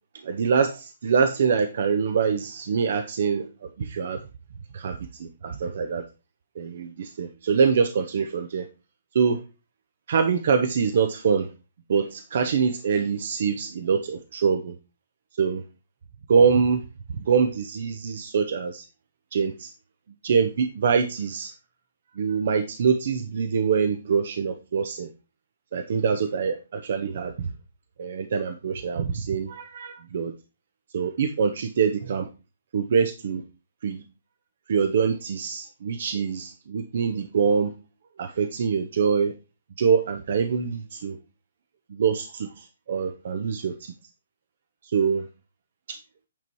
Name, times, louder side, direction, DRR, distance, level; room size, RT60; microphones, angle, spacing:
voice 1, 0.2-4.2 4.7-6.0 6.5-8.7 9.1-9.4 10.1-11.5 11.9-14.8 15.3-15.6 16.3-16.8 17.2-18.8 19.3-19.7 20.2-21.5 22.1-25.1 25.7-27.5 28.0-30.3 30.9-32.3 32.7-33.4 33.8-34.0 34.7-37.7 38.2-39.3 39.8-41.2 41.9-43.9 44.8-45.3 45.9-46.0, right 6 dB, 55° right, 8 dB, 1.0 m, -24 dB
9.2 x 5.4 x 4.6 m, 0.30 s
figure-of-eight pair, 135°, 0 cm